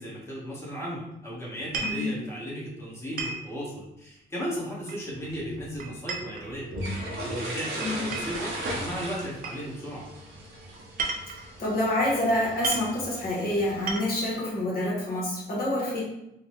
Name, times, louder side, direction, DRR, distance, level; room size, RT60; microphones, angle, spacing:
voice 1, 0.0-6.6 7.2-10.1, equal, 15° left, -6 dB, 1.3 m, -35 dB
sound 1, 1.6-2.1 3.2-3.5 4.9-5.3 5.8-7.0 7.8-8.4 9.4-9.6 10.8-11.5 12.3-12.4 12.6-12.9 13.6-14.3, right 4 dB, 45° right, 0.6 m, -34 dB
voice 2, 1.8-2.1 7.8-8.1 11.6-16.0, left 1 dB, 50° left, -5 dB, 1.2 m, -27 dB
sound 2, 5.1-14.0, right 1 dB, 75° right, 1.0 m, -38 dB
3.7 x 2.2 x 3.1 m, 0.86 s
cardioid pair, 90°, 20 cm